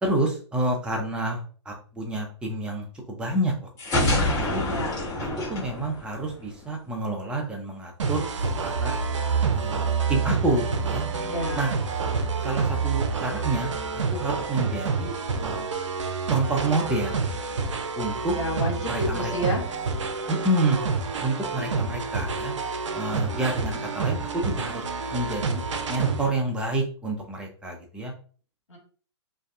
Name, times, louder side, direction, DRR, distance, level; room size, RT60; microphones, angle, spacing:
voice 1, 0.0-3.5 4.2-4.6 5.5-9.0 9.5-11.1 11.5-11.7 12.4-13.7 14.1-15.7 16.3-17.2 18.0-18.3 18.9-19.2 20.3-20.8 21.2-22.5 22.9-24.8 25.1-25.6 25.9-28.1, right 2 dB, 5° right, 0 dB, 0.5 m, -28 dB
sound 1, 3.8-6.6, left 1 dB, 25° left, 1.1 m, -26 dB
sound 2, 8.0-26.3, right 4 dB, 80° right, 0.5 m, -29 dB
sound 3, 8.4-14.1, right 6 dB, 35° right, 1.1 m, -29 dB
voice 2, 11.2-11.7 18.3-19.6 28.7-28.8, equal, 80° left, 0 dB, 1.2 m, -30 dB
2.6 x 2.2 x 2.5 m, 0.40 s
hypercardioid pair, 125°, 15 cm